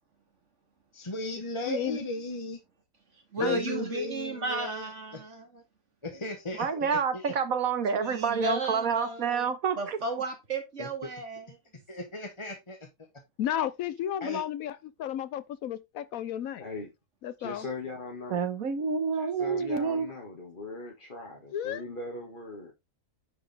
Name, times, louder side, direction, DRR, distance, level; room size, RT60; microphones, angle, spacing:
voice 1, 0.9-2.6 3.4-5.2 6.0-7.3 10.8-10.9 11.9-12.8 14.2-14.4, left 1 dB, 25° left, 1.3 m, -36 dB
voice 2, 1.7-2.0 3.4-3.8 13.4-16.6 17.2-17.6 19.4-19.5 21.5-21.8, left 10 dB, 90° left, 1.2 m, -33 dB
voice 3, 3.3-5.6 7.9-9.5 9.8-11.5, right 2 dB, 60° right, 2.5 m, -34 dB
voice 4, 6.6-10.0 18.3-20.1, right 6 dB, 90° right, 1.6 m, -28 dB
voice 5, 17.4-18.5 19.1-22.7, left 3 dB, 40° left, 2.0 m, -40 dB
9.5 x 5.0 x 3.5 m
omnidirectional pair, 1.4 m